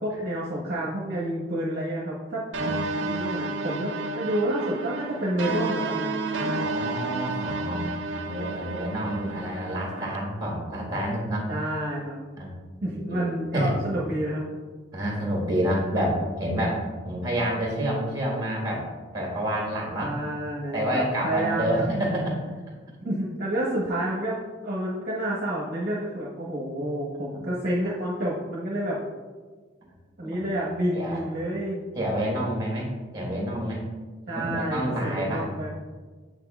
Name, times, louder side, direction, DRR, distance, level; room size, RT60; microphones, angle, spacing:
voice 1, 0.0-2.4 2.8-6.5 11.5-12.2 12.8-14.4 19.9-21.9 23.0-24.4 24.6-29.0 30.2-31.8 34.3-35.7, right 1 dB, 50° right, -5 dB, 0.9 m, -29 dB
sound 1, 2.5-10.2, right 3 dB, 70° right, 0.5 m, -31 dB
voice 2, 6.5-7.8 8.2-11.5 12.4-12.5 12.9-13.7 14.9-18.8 19.1-20.1 20.7-22.4 27.3-27.5 30.2-31.2 31.9-33.8 34.3-35.4, equal, 20° right, -2 dB, 1.4 m, -28 dB
7.2 x 6.0 x 2.3 m, 1.4 s
head